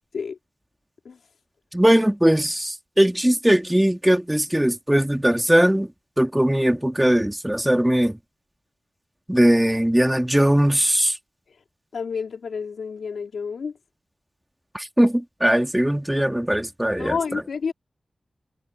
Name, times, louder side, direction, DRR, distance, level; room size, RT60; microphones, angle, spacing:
voice 1, 1.7-5.9 6.2-8.2 9.3-11.2 14.7-17.4, right 1 dB, 10° right, 2.2 m, -20 dB
voice 2, 11.9-13.7 17.0-17.7, left 5 dB, 85° left, 4.3 m, -29 dB
cardioid pair, 60°, 0 cm